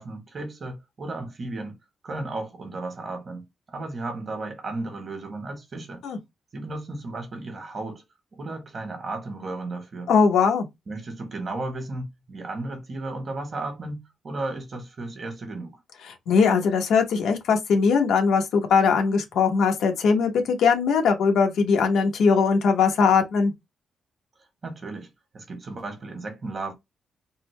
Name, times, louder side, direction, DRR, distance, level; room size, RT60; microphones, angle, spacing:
voice 1, 0.0-1.8 2.0-6.0 6.5-8.0 8.4-10.1 10.9-15.8 24.6-25.1 25.3-26.7, right 2 dB, 35° right, 1.2 m, -34 dB
voice 2, 10.1-10.7 16.3-23.5, left 5 dB, 85° left, 0.9 m, -20 dB
3.7 x 2.1 x 3.1 m
wide cardioid pair, 150°, 0 cm